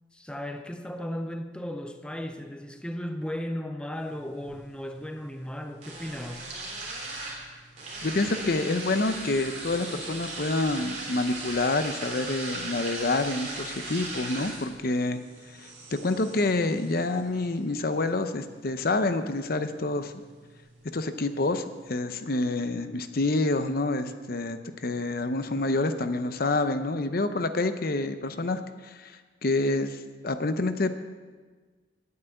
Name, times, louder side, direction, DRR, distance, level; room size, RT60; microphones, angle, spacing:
voice 1, 0.1-6.5, equal, 5° left, 0.5 m, -35 dB
sound 1, 4.0-22.0, right 2 dB, 40° right, 3.5 m, -40 dB
voice 2, 8.0-15.2 15.9-20.1 20.9-30.9, left 2 dB, 50° left, 0.7 m, -27 dB
10.5 x 9.5 x 7.9 m
head